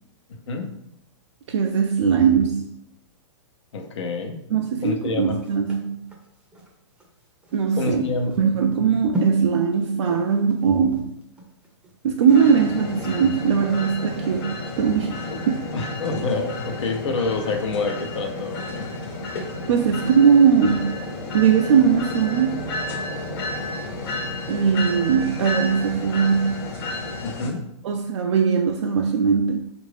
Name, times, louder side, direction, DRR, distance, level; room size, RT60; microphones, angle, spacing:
voice 1, 0.3-0.7 3.7-4.4 4.8-5.4 7.8-8.4 15.3-15.4 15.7-18.9 27.2-27.6, left 3 dB, 80° left, 4 dB, 0.7 m, -27 dB
voice 2, 1.5-2.7 4.5-6.1 7.5-8.0 8.4-11.1 12.0-15.6 19.7-21.1 21.3-22.7 24.5-26.7 27.8-29.7, right 6 dB, 80° right, 3 dB, 0.4 m, -20 dB
sound 1, 4.8-13.3 13.7-13.8, right 1 dB, 5° right, 0.5 m, -36 dB
sound 2, 12.3-27.5, left 2 dB, 55° left, 1.1 m, -32 dB
3.5 x 2.5 x 3.3 m, 0.79 s
hypercardioid pair, 135°, 15 cm